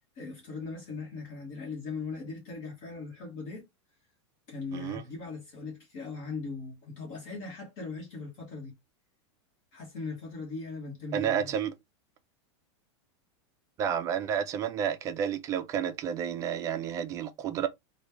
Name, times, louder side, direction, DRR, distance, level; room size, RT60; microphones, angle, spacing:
voice 1, 0.0-3.7 4.5-8.7 9.7-11.5, left 4 dB, 40° left, 1.1 m, -39 dB
voice 2, 11.1-11.7 13.8-17.7, right 8 dB, 20° right, 0.3 m, -30 dB
3.1 x 2.2 x 3.3 m
supercardioid pair, 155°, 15 cm